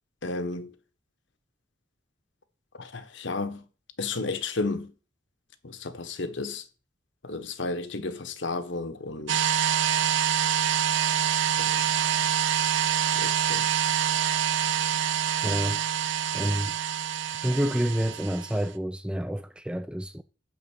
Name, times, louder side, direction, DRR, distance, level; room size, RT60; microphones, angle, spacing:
voice 1, 0.2-0.7 2.7-3.6 4.0-4.9 5.6-6.6 7.2-9.5 11.6-11.9 13.1-13.7, left 3 dB, 70° left, 1.1 m, -33 dB
sound 1, 9.3-18.6, right 10 dB, 70° right, 0.6 m, -26 dB
voice 2, 15.4-15.8 16.3-16.7 17.4-20.2, equal, 5° right, 0.3 m, -28 dB
10.5 x 3.8 x 7.2 m
head